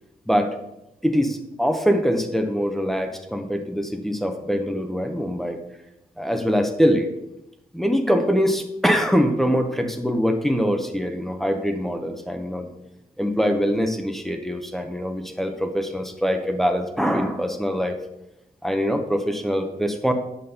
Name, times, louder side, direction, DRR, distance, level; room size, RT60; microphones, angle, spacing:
voice 1, 1.0-5.6 6.2-7.1 7.7-12.7 13.2-18.0 18.6-20.1, equal, ahead, 4 dB, 0.6 m, -23 dB
7.7 x 5.1 x 2.7 m, 0.87 s
wide cardioid pair, 145°, 16 cm